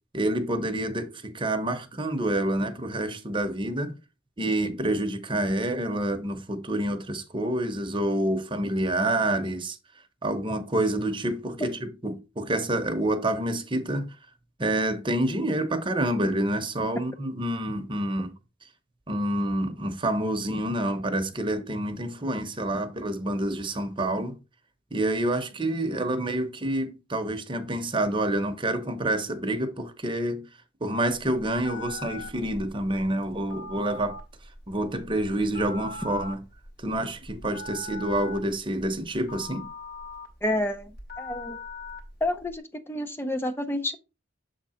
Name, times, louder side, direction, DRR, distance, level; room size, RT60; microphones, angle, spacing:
voice 1, 0.1-4.0 4.4-9.8 10.2-14.2 14.6-18.3 19.1-24.4 24.9-30.4 30.8-34.2 34.7-36.4 36.8-39.7, right 1 dB, 25° right, 0.9 m, -28 dB
Telephone, 31.1-42.5, left 2 dB, 50° left, 2.2 m, -41 dB
voice 2, 40.4-41.6 42.2-44.0, left 1 dB, 10° left, 0.5 m, -29 dB
7.1 x 3.7 x 4.3 m
head